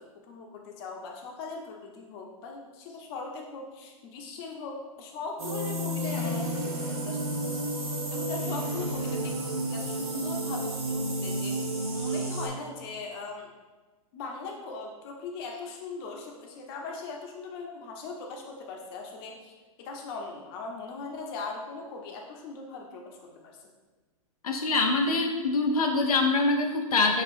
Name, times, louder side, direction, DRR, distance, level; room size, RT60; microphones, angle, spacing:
voice 1, 0.0-11.6 11.9-13.5 14.1-23.7, left 4 dB, 40° left, 1 dB, 0.7 m, -40 dB
sound 1, 5.4-12.5, right 1 dB, 80° right, 0.9 m, -31 dB
voice 2, 24.4-27.2, left 3 dB, 90° left, 2 dB, 0.5 m, -24 dB
6.2 x 2.4 x 2.6 m, 1.3 s
hypercardioid pair, 120°, 18 cm